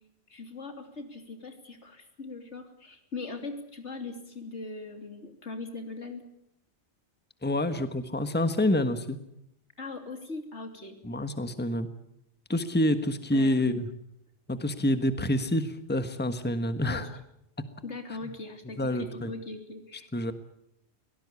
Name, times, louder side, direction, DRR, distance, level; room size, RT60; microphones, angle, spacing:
voice 1, 0.3-6.2 9.8-11.0 13.3-13.9 16.8-17.1 17.8-20.1, left 3 dB, 80° left, 6 dB, 3.5 m, -40 dB
voice 2, 7.4-9.2 11.0-11.9 12.5-13.9 14.5-17.1 18.1-18.3 18.8-19.3 20.1-20.3, left 1 dB, 10° left, 10 dB, 1.4 m, -27 dB
24.0 x 18.0 x 8.4 m, 0.78 s
omnidirectional pair, 1.2 m